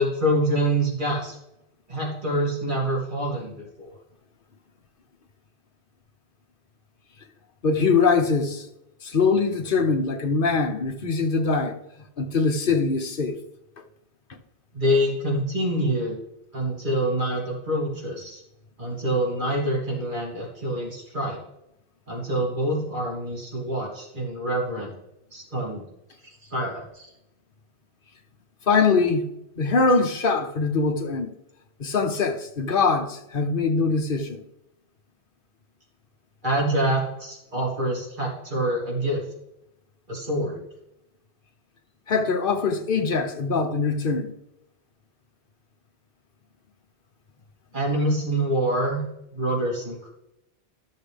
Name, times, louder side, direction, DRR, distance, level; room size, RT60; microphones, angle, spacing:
voice 1, 0.0-1.4 1.9-3.9 14.7-16.2 16.5-18.4 18.8-21.4 22.1-24.9 25.3-25.8 26.2-27.1 36.4-39.2 40.1-40.6 47.7-49.0 49.3-50.1, right 1 dB, 45° right, 3.2 m, -26 dB
voice 2, 7.6-8.7 9.0-11.8 12.2-13.4 28.7-29.2 29.6-31.3 31.8-34.4 42.1-44.3, left 4 dB, 55° left, 1.1 m, -22 dB
13.5 x 6.6 x 3.4 m
omnidirectional pair, 1.1 m